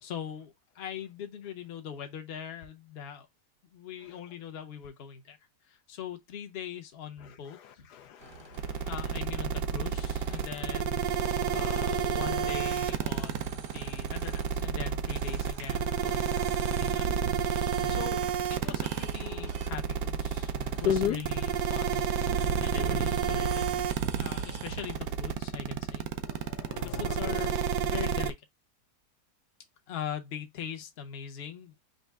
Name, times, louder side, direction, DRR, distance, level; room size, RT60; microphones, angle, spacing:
voice 1, 0.0-3.3 3.7-5.4 5.7-7.9 8.8-11.1 11.5-17.1 17.6-18.2 18.5-22.1 22.6-23.7 24.2-26.4 26.8-28.4 29.9-31.7, left 8 dB, 45° left, 0.8 m, -41 dB
voice 2, 8.0-8.9 11.1-12.5 17.8-17.9 19.2-19.5 20.6-21.2 26.3-27.5, left 9 dB, 75° left, 1.1 m, -35 dB
sound 1, 8.2-25.0, right 5 dB, 55° right, 1.0 m, -42 dB
sound 2, 8.6-28.3, right 7 dB, 90° right, 1.2 m, -30 dB
5.4 x 2.1 x 3.5 m
omnidirectional pair, 1.8 m